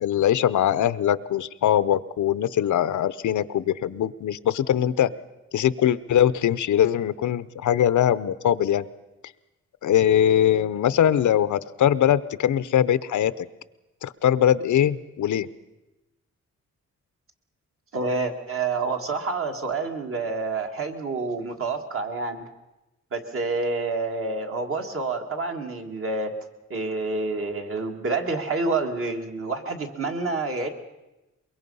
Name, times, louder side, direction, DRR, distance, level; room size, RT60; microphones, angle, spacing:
voice 1, 0.0-5.1 5.5-8.9 9.8-13.5 14.0-15.5, left 10 dB, 85° left, 16 dB, 0.7 m, -22 dB
voice 2, 17.9-22.5 23.1-26.3 26.7-30.7, right 3 dB, 50° right, 4 dB, 2.0 m, -28 dB
23.0 x 22.5 x 5.5 m, 1.0 s
wide cardioid pair, 180°, 29 cm